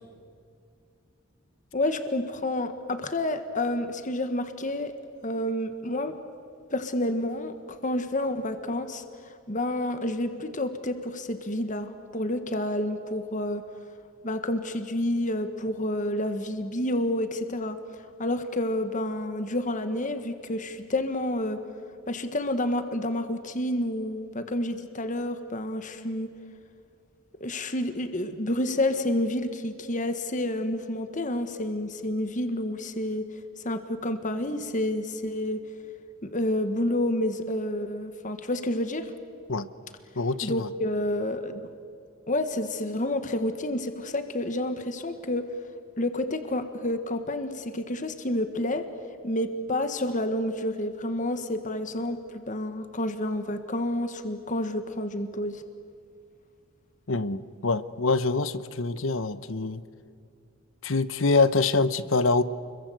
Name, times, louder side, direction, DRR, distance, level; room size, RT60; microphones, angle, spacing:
voice 1, 1.7-4.9 5.2-6.1 6.7-13.6 14.2-17.8 18.2-21.6 22.1-26.3 27.4-33.3 33.6-35.6 36.2-39.1 40.4-41.7 42.3-45.5 46.0-48.8 49.2-55.6, left 1 dB, 35° left, 9 dB, 1.5 m, -29 dB
voice 2, 40.2-40.7 57.1-59.8 60.8-62.4, left 3 dB, 65° left, 15 dB, 1.0 m, -25 dB
30.0 x 22.5 x 8.0 m, 2.3 s
head